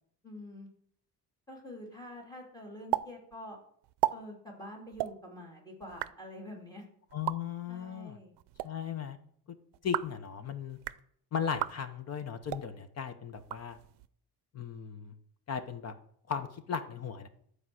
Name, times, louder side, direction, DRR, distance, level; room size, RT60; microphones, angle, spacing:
voice 1, 0.2-0.7 1.5-3.6 4.1-6.8 7.7-8.3, left 1 dB, 10° left, 1 dB, 2.9 m, -46 dB
sound 1, 2.9-3.1 3.3-3.4 3.8-4.1 4.9-5.1 5.8-6.1 7.1-7.4 8.4-8.7 9.7-10.2 10.7-11.0 11.5-11.7 12.4-12.7 13.4-14.1, right 16 dB, 80° right, 0.6 m, -34 dB
voice 2, 7.1-8.2 8.6-9.2 9.5-9.6 9.8-10.8 11.3-13.8 14.5-15.1 15.5-15.9 16.3-17.3, left 7 dB, 40° left, 10 dB, 0.9 m, -37 dB
12.5 x 4.8 x 7.7 m, 0.64 s
cardioid pair, 170°, 40 cm